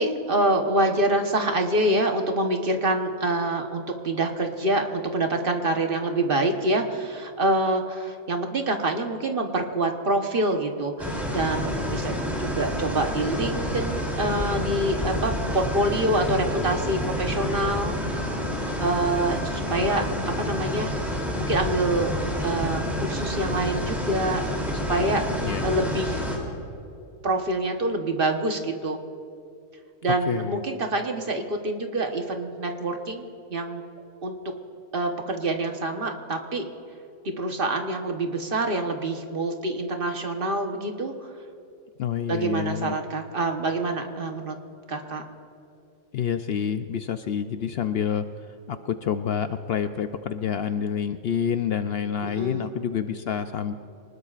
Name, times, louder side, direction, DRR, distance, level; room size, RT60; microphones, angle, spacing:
voice 1, 0.0-18.0 18.6-22.1 22.4-26.2 27.2-29.0 30.0-33.8 34.2-34.3 34.9-36.7 37.2-41.1 42.3-44.6 44.9-45.2 52.2-52.7, right 2 dB, 45° right, 4 dB, 1.3 m, -26 dB
sound 1, 11.0-26.4, equal, ahead, 2.9 m, -29 dB
voice 2, 30.3-30.6 42.0-42.9 46.1-48.3 48.7-53.7, left 8 dB, 65° left, 9 dB, 0.7 m, -28 dB
25.0 x 19.5 x 2.5 m, 2.7 s
omnidirectional pair, 1.3 m